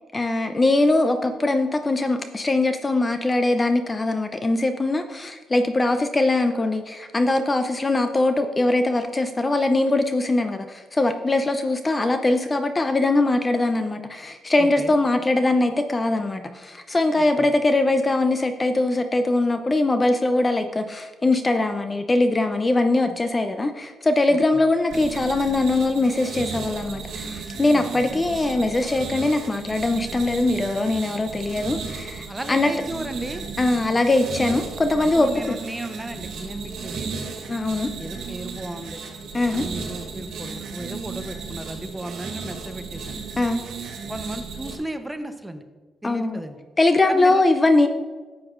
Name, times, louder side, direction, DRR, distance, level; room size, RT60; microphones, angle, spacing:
voice 1, 0.1-32.7 33.6-35.6 37.5-37.9 39.3-39.6 43.4-43.6 46.0-46.4 46.8-47.9, left 2 dB, 25° left, 8 dB, 0.5 m, -21 dB
voice 2, 14.6-14.9 17.2-17.5 24.3-24.4 27.7-28.1 32.3-33.5 35.1-37.2 38.0-39.0 39.5-43.2 44.1-45.6 46.0-46.6 47.1-47.4, right 1 dB, 10° right, 8 dB, 0.8 m, -34 dB
sound 1, 24.9-44.8, right 4 dB, 80° right, 1.8 m, -35 dB
11.5 x 8.0 x 2.5 m, 1.4 s
cardioid pair, 90°, 0 cm